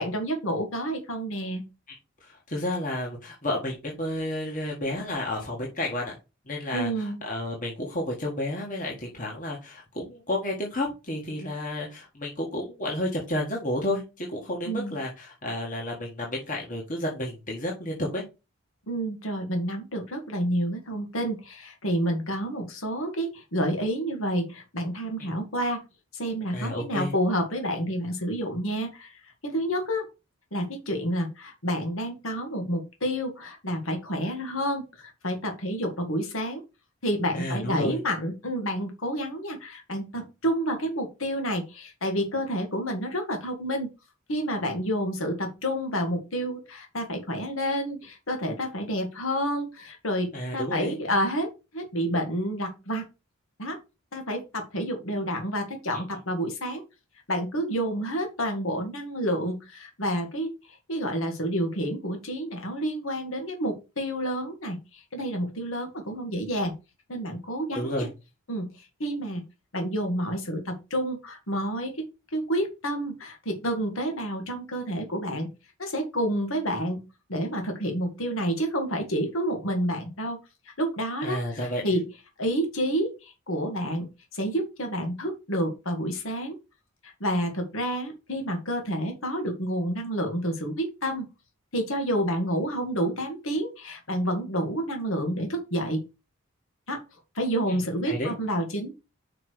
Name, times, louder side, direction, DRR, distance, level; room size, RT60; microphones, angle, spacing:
voice 1, 0.0-1.6 6.7-7.2 14.7-15.0 18.9-25.8 26.1-30.1 30.5-36.6 37.0-43.9 44.3-53.1 53.6-53.8 54.1-56.8 57.3-66.7 67.1-68.1 68.5-68.7 69.0-69.4 69.7-72.0 72.3-75.5 75.8-77.0 77.3-80.4 80.7-82.1 82.4-86.5 87.0-91.3 91.7-96.0 96.9-97.0 97.4-99.0, equal, 70° left, 4 dB, 2.0 m, -29 dB
voice 2, 1.9-6.2 6.5-18.2 25.2-25.3 26.5-27.1 37.3-38.0 50.3-50.9 55.9-56.0 67.7-68.1 81.2-81.8 97.7-97.8 98.0-98.3, left 1 dB, 35° left, -1 dB, 1.7 m, -31 dB
5.9 x 4.7 x 6.3 m, 0.28 s
head